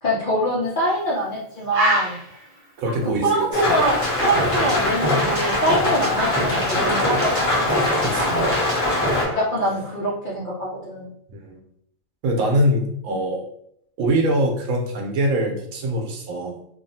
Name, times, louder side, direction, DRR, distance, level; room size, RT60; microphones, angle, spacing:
voice 1, 0.0-2.2 3.0-7.7 9.3-11.1, right 1 dB, 45° left, -5 dB, 0.7 m, -24 dB
Bird, 0.8-1.0 1.3-1.4 1.7-4.9 5.2-6.8 7.1-7.4, equal, 50° right, 0.4 m, -28 dB
voice 2, 2.8-3.7 7.9-8.5 11.3-11.6 12.2-13.4 14.0-16.5, right 1 dB, 85° right, 1 dB, 1.1 m, -23 dB
Rain, 3.5-9.2, left 2 dB, 75° left, 1.2 m, -23 dB
sound 1, 3.9-10.1, equal, 15° right, 0.7 m, -26 dB
2.7 x 2.4 x 2.7 m, 0.72 s
omnidirectional pair, 1.4 m